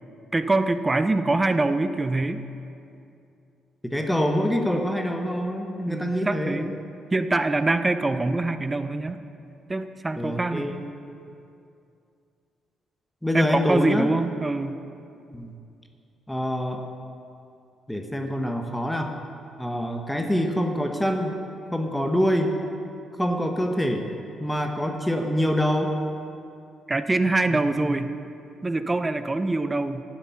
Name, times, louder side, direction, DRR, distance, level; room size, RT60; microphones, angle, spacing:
voice 1, 0.3-2.5 5.9-6.8 7.1-9.2 9.7-10.8 13.3-14.8 26.9-28.1 28.6-30.0, right 2 dB, 20° right, 11 dB, 0.5 m, -24 dB
voice 2, 3.8-6.6 10.2-10.8 13.2-14.1 15.3-15.5 16.3-16.8 17.9-19.1 19.6-21.4 21.7-22.5 23.2-24.1 24.4-26.0, equal, 5° left, 4 dB, 0.8 m, -25 dB
10.5 x 7.5 x 5.7 m, 2.6 s
cardioid pair, 90°, 0 cm